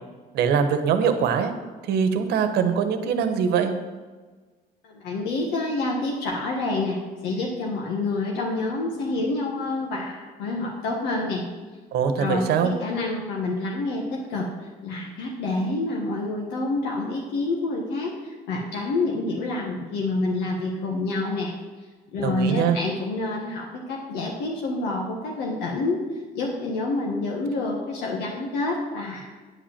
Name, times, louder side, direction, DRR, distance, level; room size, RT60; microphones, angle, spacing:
voice 1, 0.3-1.5 1.9-3.7 11.9-12.7 22.2-22.8, right 7 dB, 75° right, 8 dB, 1.1 m, -22 dB
voice 2, 4.8-11.5 12.2-21.5 22.1-26.0 26.3-29.3, left 2 dB, 85° left, -1 dB, 1.5 m, -28 dB
9.5 x 5.3 x 7.2 m, 1.4 s
cardioid pair, 110°, 17 cm